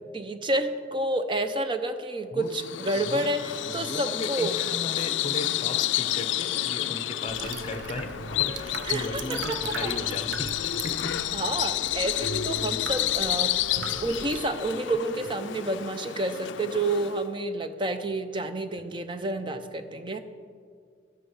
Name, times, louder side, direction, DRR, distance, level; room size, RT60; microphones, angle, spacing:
voice 1, 0.1-4.5 7.4-7.5 8.9-9.9 11.3-13.6 14.0-20.2, right 2 dB, 25° right, 8 dB, 0.6 m, -29 dB
Bird vocalization bird call bird song, 2.5-17.3, left 13 dB, 80° left, 0.3 m, -30 dB
voice 2, 2.9-11.3 18.8-18.9, left 2 dB, 35° left, 9 dB, 0.6 m, -37 dB
Wind instrument woodwind instrument, 7.1-10.1 10.3-10.6 10.9-13.5 13.8-14.5, left 1 dB, 5° right, 1.8 m, -50 dB
sound 1, 7.3-14.4, right 4 dB, 85° right, 0.6 m, -39 dB
13.0 x 9.3 x 4.7 m, 2.1 s
head